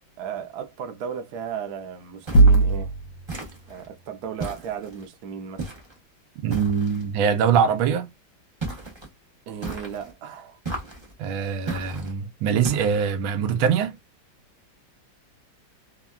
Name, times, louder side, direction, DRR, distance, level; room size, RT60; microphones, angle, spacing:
voice 1, 0.2-2.9 3.7-5.7 9.5-10.6, right 8 dB, 65° right, 1.0 m, -35 dB
sound 1, 2.3-3.3, right 3 dB, 80° left, 1.4 m, -16 dB
sound 2, 2.3-2.7 3.3-3.9 4.4-5.1 5.6-6.0 6.5-7.1 8.6-9.1 9.6-10.1 10.6-11.1 11.7-12.1 12.6-13.1, right 3 dB, 40° right, 0.3 m, -35 dB
voice 2, 6.4-8.1 11.2-13.9, right 7 dB, 85° right, 1.4 m, -23 dB
3.5 x 2.1 x 2.2 m
omnidirectional pair, 2.2 m